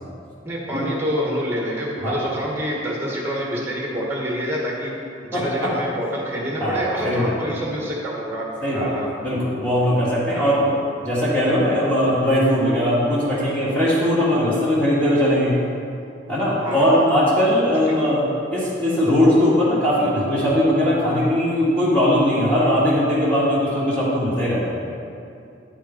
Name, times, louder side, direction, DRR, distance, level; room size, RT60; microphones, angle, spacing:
voice 1, 0.4-4.9 5.2-8.5 8.7-9.1 10.3-10.6 16.5-17.0 17.8-18.0, equal, 10° right, -3 dB, 1.3 m, -27 dB
voice 2, 5.3-5.7 6.6-7.3 8.6-8.9 9.2-10.7 11.0-15.5 16.3-18.2 18.5-24.7, equal, 5° left, -9 dB, 1.6 m, -19 dB
8.9 x 5.2 x 4.4 m, 2.5 s
head